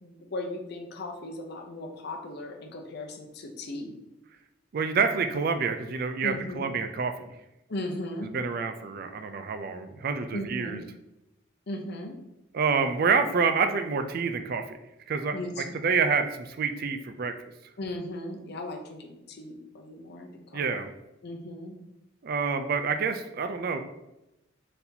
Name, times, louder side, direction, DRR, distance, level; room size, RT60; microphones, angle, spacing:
voice 1, 0.0-3.9 6.2-6.7 7.7-8.3 10.3-10.9 11.7-12.2 15.3-15.8 17.8-20.7 21.2-21.8, left 1 dB, 55° left, 2 dB, 0.7 m, -37 dB
voice 2, 4.7-7.3 8.3-10.8 12.5-14.8 15.1-15.4 15.8-17.3 20.5-20.9 22.2-23.8, right 5 dB, 50° right, 7 dB, 0.4 m, -27 dB
4.2 x 4.0 x 2.7 m, 0.91 s
head